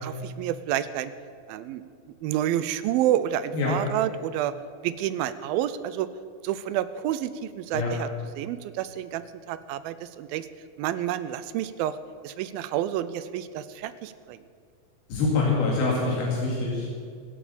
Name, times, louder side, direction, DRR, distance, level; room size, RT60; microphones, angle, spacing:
voice 1, 0.0-1.1 1.5-1.8 2.2-4.5 4.8-6.1 6.4-8.1 8.4-10.5 10.8-12.0 12.2-14.4, right 12 dB, 85° right, 14 dB, 2.4 m, -29 dB
voice 2, 15.1-16.9, left 3 dB, 80° left, -4 dB, 4.4 m, -25 dB
24.0 x 8.7 x 7.0 m, 2.2 s
omnidirectional pair, 4.2 m